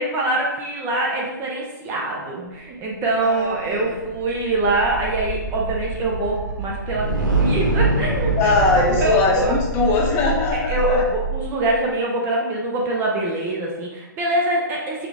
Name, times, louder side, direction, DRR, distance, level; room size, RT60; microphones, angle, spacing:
voice 1, 0.0-9.5 10.7-15.1, right 2 dB, 20° right, -2 dB, 0.6 m, -24 dB
voice 2, 3.2-3.9 8.4-11.0, left 3 dB, 25° left, -2 dB, 0.8 m, -21 dB
sound 1, 3.4-11.8, right 3 dB, 65° right, 1.4 m, -25 dB
5.9 x 2.3 x 3.5 m, 1.1 s
hypercardioid pair, 140°, 11 cm